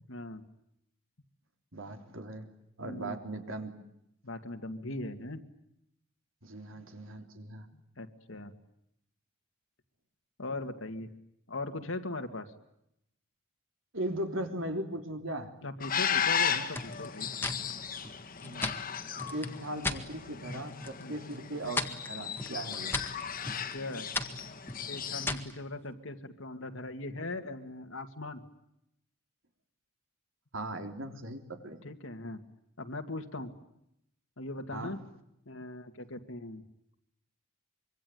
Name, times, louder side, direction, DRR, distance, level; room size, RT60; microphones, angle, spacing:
voice 1, 0.1-0.4 2.8-3.2 4.2-5.4 7.7-8.5 10.4-11.1 11.5-12.5 15.6-17.3 21.0-21.1 23.4-24.1 24.9-28.4 31.8-32.4 32.8-33.5 34.4-35.0 35.5-36.6, left 2 dB, 65° left, 6 dB, 2.1 m, -40 dB
voice 2, 1.7-2.5 2.8-3.8 6.4-7.7 13.9-15.5 18.4-18.7 19.3-23.0 30.5-31.8 34.7-34.9, right 1 dB, 65° right, 5 dB, 3.5 m, -38 dB
sound 1, 15.8-25.3, left 7 dB, 40° left, 2.0 m, -35 dB
sound 2, 16.7-20.0 20.4-21.0 21.3-25.6, left 2 dB, 10° left, 1.8 m, -37 dB
25.5 x 24.5 x 9.4 m, 0.80 s
head